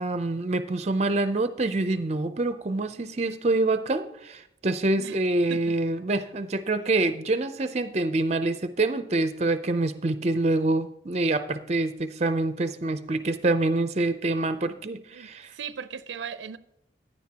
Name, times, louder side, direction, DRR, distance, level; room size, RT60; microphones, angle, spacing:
voice 1, 0.0-15.5, right 2 dB, 35° right, 0.5 m, -26 dB
voice 2, 15.1-16.6, right 6 dB, 85° right, 0.5 m, -38 dB
15.5 x 9.9 x 2.9 m
head